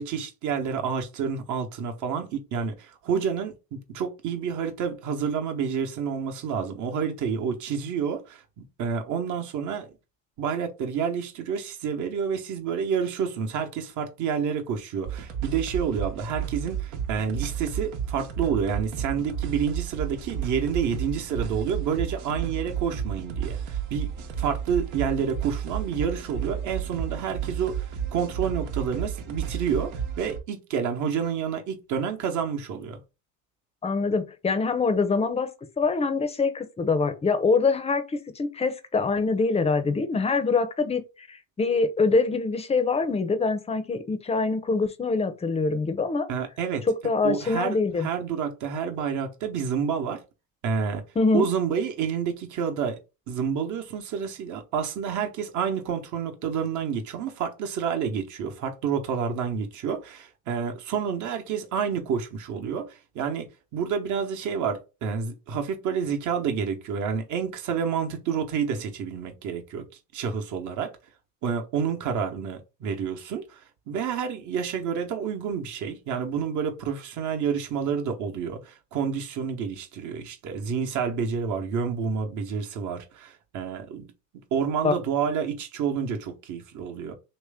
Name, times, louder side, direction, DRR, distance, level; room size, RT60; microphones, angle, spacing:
voice 1, 0.0-9.9 10.4-24.1 24.4-29.9 30.2-33.0 46.3-46.8 47.2-50.2 50.6-51.0 51.3-53.0 53.3-69.9 70.1-70.9 71.4-87.1, right 7 dB, 45° right, 1.1 m, -29 dB
sound 1, 15.0-30.4, right 9 dB, 70° right, 1.1 m, -32 dB
voice 2, 33.8-35.5 35.8-46.3 47.0-48.1 51.2-51.5 84.8-84.9, left 4 dB, 15° left, 0.7 m, -24 dB
3.2 x 3.0 x 3.5 m
hypercardioid pair, 90°, 41 cm